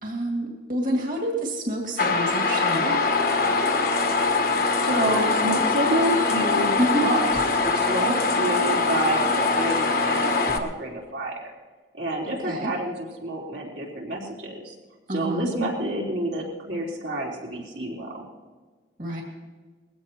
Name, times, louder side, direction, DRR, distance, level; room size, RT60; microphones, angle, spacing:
voice 1, 0.0-3.1 6.8-7.0 12.4-12.7 15.1-15.5 19.0-19.2, right 1 dB, 45° right, 0 dB, 2.3 m, -28 dB
sound 1, 2.0-10.6, left 3 dB, 50° left, 1.3 m, -23 dB
voice 2, 4.8-6.7 7.0-7.2 7.6-11.5 11.9-14.7 15.1-18.2, right 1 dB, 75° right, -2 dB, 3.6 m, -28 dB
21.0 x 16.0 x 3.0 m, 1.4 s
head